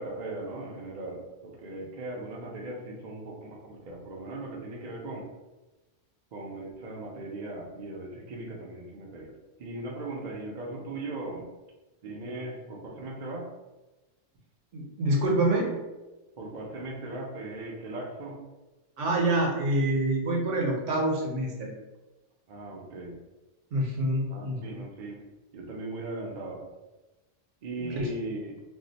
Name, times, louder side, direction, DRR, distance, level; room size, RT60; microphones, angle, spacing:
voice 1, 0.0-5.3 6.3-9.3 9.6-11.5 12.0-13.5 16.4-18.4 22.5-23.2 24.3-25.2 25.5-26.6 27.6-28.6, right 2 dB, 55° right, -1 dB, 0.5 m, -38 dB
voice 2, 14.7-15.7 19.0-21.7 23.7-24.9 27.8-28.1, right 1 dB, 70° right, -1 dB, 1.1 m, -26 dB
2.7 x 2.1 x 3.9 m, 1.1 s
omnidirectional pair, 1.3 m